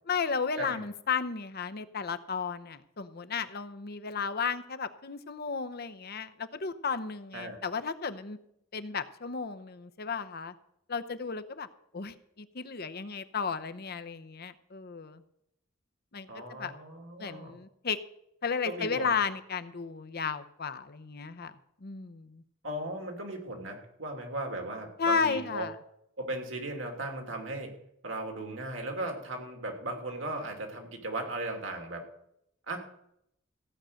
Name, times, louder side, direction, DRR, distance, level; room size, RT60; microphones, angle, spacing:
voice 1, 0.1-8.4 8.7-10.5 10.9-11.7 11.9-15.2 16.1-16.3 16.6-16.7 17.2-18.0 18.4-21.5 21.8-22.4 25.0-25.7, left 5 dB, 50° left, 11 dB, 0.8 m, -33 dB
voice 2, 16.3-17.5 18.7-19.1 22.6-25.7 26.2-27.7 28.0-32.1 32.7-32.8, right 2 dB, 65° right, 3 dB, 2.9 m, -37 dB
15.5 x 8.9 x 6.4 m, 0.76 s
head